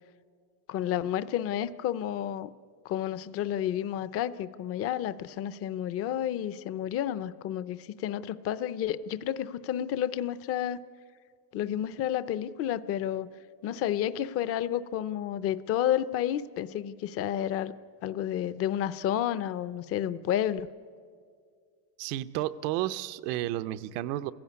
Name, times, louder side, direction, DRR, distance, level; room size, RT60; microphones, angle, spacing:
voice 1, 0.7-2.5 2.8-10.8 11.5-13.3 13.6-17.8 18.0-20.7, left 11 dB, 30° left, 15 dB, 0.5 m, -31 dB
voice 2, 22.0-24.3, right 14 dB, 80° right, 13 dB, 0.9 m, -32 dB
27.5 x 16.5 x 9.5 m, 2.1 s
cardioid pair, 155°, 46 cm